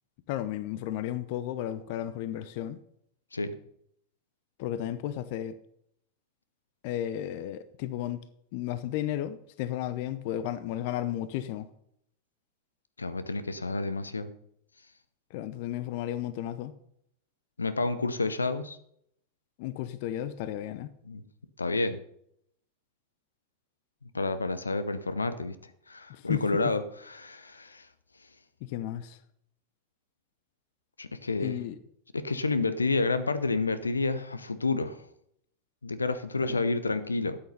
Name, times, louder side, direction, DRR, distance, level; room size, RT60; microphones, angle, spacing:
voice 1, 0.3-2.8 4.6-5.6 6.8-8.2 8.5-11.7 15.3-16.7 19.6-20.9 26.1-26.7 28.6-29.2 31.4-31.8 36.4-36.6, left 12 dB, 50° left, 0.7 m, -33 dB
voice 2, 13.0-14.3 17.6-18.8 21.1-21.2 21.6-22.0 24.1-25.6 25.9-27.9 31.0-31.6 32.1-35.0 35.8-37.4, left 3 dB, 80° left, 0.8 m, -29 dB
12.5 x 8.8 x 5.4 m
figure-of-eight pair, 90°, 0 cm